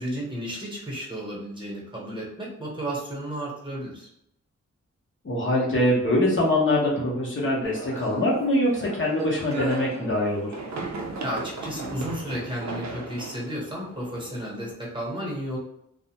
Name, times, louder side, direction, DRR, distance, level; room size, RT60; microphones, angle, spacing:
voice 1, 0.0-4.1 11.2-15.6, equal, 15° right, -5 dB, 1.0 m, -33 dB
voice 2, 5.2-10.6, left 1 dB, 45° left, -5 dB, 0.7 m, -23 dB
sound 1, 7.6-14.7, right 2 dB, 70° right, 0.5 m, -37 dB
2.4 x 2.1 x 2.8 m, 0.77 s
wide cardioid pair, 95°, 29 cm